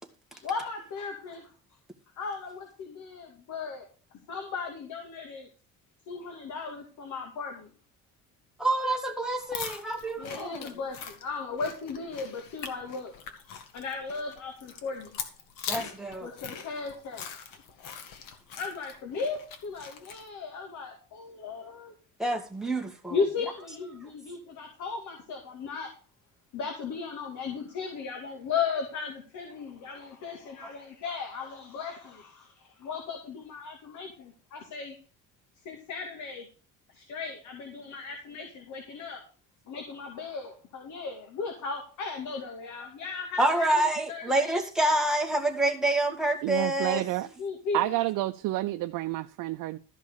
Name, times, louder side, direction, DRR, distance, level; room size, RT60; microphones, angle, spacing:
voice 1, 0.3-1.5 2.2-3.9 4.3-5.5 6.1-7.7 10.2-13.1 13.7-15.2 16.2-17.3 18.6-21.9 23.1-25.9 26.5-34.9 35.6-36.5 36.9-39.2 39.7-43.8 44.1-44.6 47.2-48.0, left 5 dB, 65° left, 2.5 m, -36 dB
voice 2, 8.6-10.6 15.7-16.3 22.2-23.2 43.4-47.0, right 1 dB, ahead, 1.9 m, -27 dB
sound 1, 9.4-20.3, left 7 dB, 90° left, 1.9 m, -42 dB
voice 3, 46.4-47.3 47.7-49.8, right 16 dB, 75° right, 0.7 m, -29 dB
13.5 x 5.3 x 6.4 m
cardioid pair, 155°, 32 cm